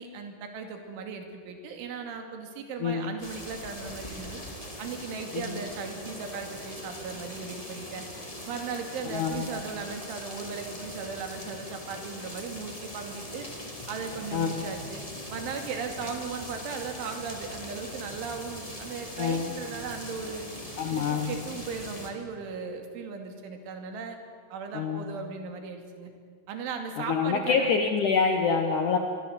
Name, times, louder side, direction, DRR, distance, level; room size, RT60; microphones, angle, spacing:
voice 1, 0.0-4.4 4.8-8.0 8.5-13.5 13.9-15.0 15.3-20.5 20.9-24.2 24.5-26.1 26.5-27.7, right 5 dB, 85° right, 5 dB, 5.0 m, -37 dB
voice 2, 2.8-3.1 5.3-5.6 9.1-9.4 14.3-14.6 19.2-19.5 20.8-21.3 24.7-25.1 27.1-29.0, left 5 dB, 70° left, 5 dB, 1.9 m, -26 dB
sound 1, 3.2-22.1, left 1 dB, 15° left, 1.5 m, -41 dB
26.0 x 22.5 x 8.1 m, 2.1 s
omnidirectional pair, 5.4 m